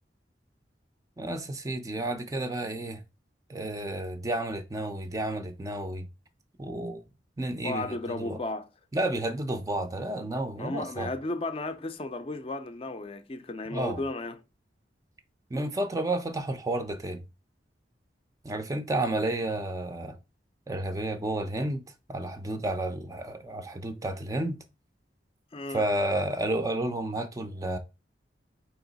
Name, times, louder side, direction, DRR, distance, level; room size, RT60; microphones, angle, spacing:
voice 1, 1.2-3.0 3.5-6.1 6.6-7.0 7.4-8.4 8.9-11.1 13.7-14.0 15.5-17.2 18.4-20.2 20.7-21.8 22.1-24.6 25.7-27.8, right 1 dB, 20° right, 0.4 m, -31 dB
voice 2, 7.6-8.7 10.6-14.4 25.5-25.9, left 2 dB, 35° left, 0.4 m, -34 dB
4.6 x 2.9 x 3.9 m
head